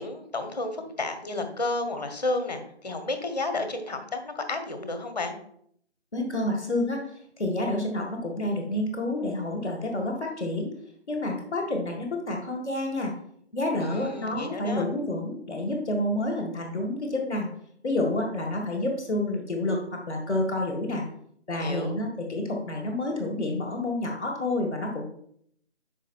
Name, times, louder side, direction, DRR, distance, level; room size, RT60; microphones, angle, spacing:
voice 1, 0.0-5.4 13.8-14.8 21.5-22.0, left 2 dB, 40° left, 7 dB, 1.0 m, -31 dB
voice 2, 6.1-7.0 7.4-10.7 11.1-13.1 13.5-17.5 17.8-21.0 21.5-25.0, left 1 dB, 5° left, -9 dB, 0.9 m, -29 dB
6.4 x 5.0 x 4.3 m, 0.67 s
figure-of-eight pair, 155°, 34 cm